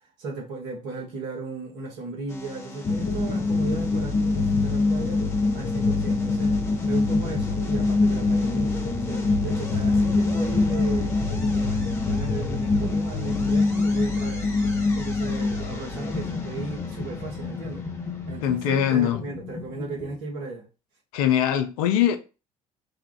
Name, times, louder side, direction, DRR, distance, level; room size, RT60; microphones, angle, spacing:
voice 1, 0.2-5.3 5.5-6.5 6.8-14.5 14.9-17.8 18.3-20.7, right 3 dB, 70° right, 1.3 m, -35 dB
sound 1, 2.3-18.6, left 1 dB, 15° left, 1.3 m, -38 dB
sound 2, 2.8-20.2, left 3 dB, 40° left, 0.9 m, -25 dB
voice 2, 18.4-19.2 21.1-22.2, left 10 dB, 80° left, 0.5 m, -22 dB
3.5 x 2.3 x 3.7 m
hypercardioid pair, 55°, 19 cm